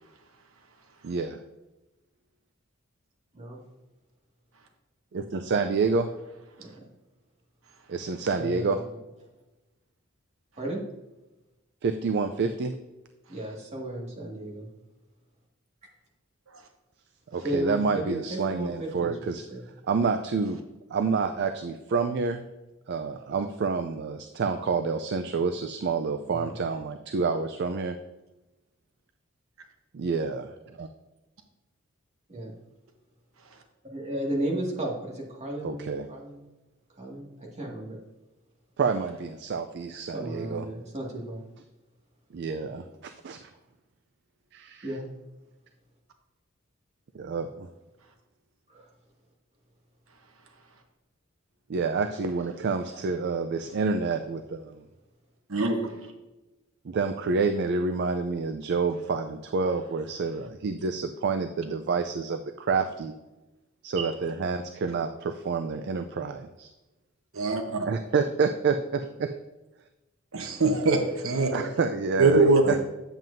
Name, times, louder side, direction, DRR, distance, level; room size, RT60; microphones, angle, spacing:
voice 1, 1.0-1.4 5.1-6.1 7.9-8.8 11.8-12.7 17.3-19.4 19.9-20.6 20.9-22.4 22.9-28.0 29.9-30.5 30.8-30.9 35.6-36.1 38.8-40.7 42.3-43.5 44.5-44.9 47.1-47.7 51.7-54.8 56.8-63.1 63.8-66.7 67.8-69.4 71.5-72.8, right 4 dB, 55° right, 8 dB, 0.4 m, -28 dB
voice 2, 8.4-8.8 10.6-10.8 13.3-14.7 17.3-19.2 19.5-19.6 26.3-26.5 32.3-32.5 33.9-36.4 37.0-38.0 40.1-41.4 44.8-45.0 48.7-48.9, right 1 dB, 35° right, -2 dB, 1.9 m, -34 dB
voice 3, 55.5-55.8 64.0-64.1 67.3-67.9 70.3-71.7 72.2-72.7, right 3 dB, 90° right, 4 dB, 1.0 m, -23 dB
9.0 x 7.5 x 2.6 m, 1.0 s
head